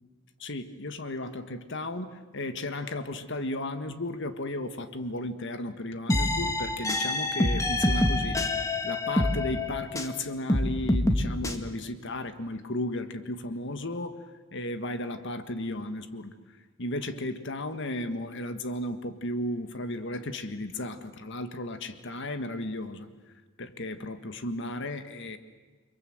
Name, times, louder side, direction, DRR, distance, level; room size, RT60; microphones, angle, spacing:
voice 1, 0.4-8.4 8.8-14.2 14.5-16.3 16.8-23.1 23.6-25.4, left 1 dB, 60° left, 10 dB, 1.6 m, -34 dB
sound 1, 6.1-10.2 10.5-11.5, left 1 dB, 15° left, 1.9 m, -26 dB
29.5 x 24.0 x 7.9 m, 1.3 s
head